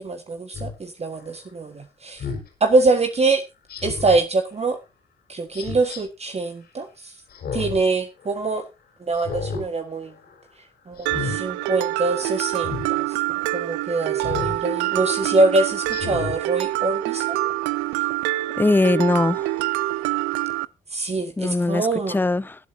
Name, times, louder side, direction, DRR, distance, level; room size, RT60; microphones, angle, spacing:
voice 1, 0.0-2.2 2.6-3.4 3.8-4.8 5.3-7.1 7.5-8.7 9.1-10.1 10.9-17.5 20.9-22.2, right 3 dB, 35° right, 1.5 m, -24 dB
Speech synthesizer, 0.5-0.7 2.2-2.5 3.7-4.2 5.5-6.0 7.3-7.8 8.2-8.3 9.1-9.7 10.0-10.3 11.0-11.4 12.6-12.9 14.2-14.6 15.1-15.2 15.9-16.4 16.8-16.9, left 5 dB, 65° left, 4.5 m, -31 dB
Mallet percussion, 11.1-20.6, right 17 dB, 80° right, 0.5 m, -26 dB
voice 2, 18.6-19.5 21.4-22.6, left 2 dB, 10° left, 0.6 m, -21 dB
20.5 x 8.3 x 2.7 m
hypercardioid pair, 45°, 18 cm